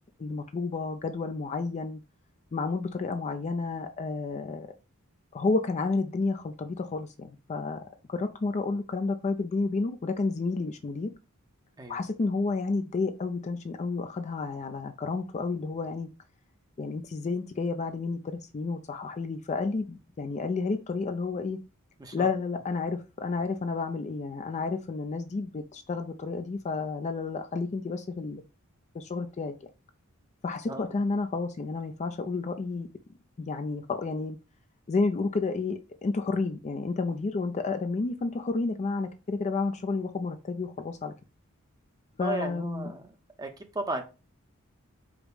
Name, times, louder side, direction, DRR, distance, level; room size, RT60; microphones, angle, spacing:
voice 1, 0.2-2.0 2.5-4.7 5.3-11.1 11.9-16.1 16.8-21.6 22.1-28.4 28.9-29.7 30.4-32.9 33.4-34.4 34.9-41.1 42.2-42.9, left 3 dB, 35° left, 0.4 m, -31 dB
voice 2, 30.7-31.0 42.2-43.1 43.4-44.0, right 2 dB, 20° right, 0.7 m, -35 dB
5.0 x 2.1 x 4.7 m
head